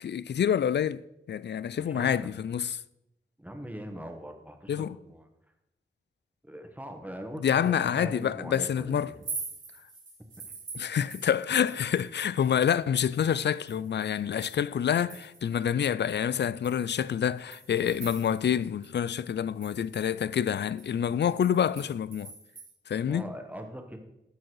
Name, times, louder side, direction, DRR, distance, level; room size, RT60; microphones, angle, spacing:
voice 1, 0.0-2.8 4.7-5.0 7.4-9.1 10.8-22.3 22.9-23.2, left 8 dB, 60° left, 0.4 m, -27 dB
voice 2, 1.7-2.3 3.4-5.3 6.4-9.1 23.1-24.0, equal, 5° right, 1.6 m, -41 dB
sound 1, 9.1-12.2 12.4-15.6 16.1-16.2 16.6-18.6 18.8-18.9 19.3-22.7, right 4 dB, 75° right, 2.1 m, -44 dB
12.5 x 4.6 x 4.7 m
cardioid pair, 45°, 20 cm